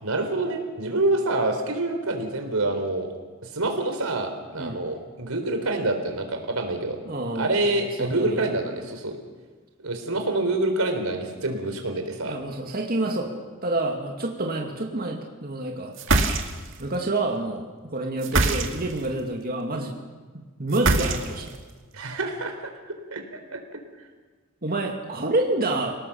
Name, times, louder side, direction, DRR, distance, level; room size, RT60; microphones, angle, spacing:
voice 1, 0.0-3.1 3.5-7.0 7.4-9.2 9.8-12.4 21.9-23.8, right 2 dB, 90° right, 5 dB, 3.9 m, -27 dB
voice 2, 7.1-7.5 8.0-8.4 8.7-8.9 12.2-13.3 13.6-15.9 16.8-20.0 20.3-21.5 24.6-26.0, right 2 dB, 45° right, 1 dB, 2.4 m, -28 dB
sound 1, 15.9-16.8 18.2-19.1 20.7-21.6, right 2 dB, 60° right, 2.2 m, -23 dB
29.0 x 18.5 x 7.1 m, 1.4 s
head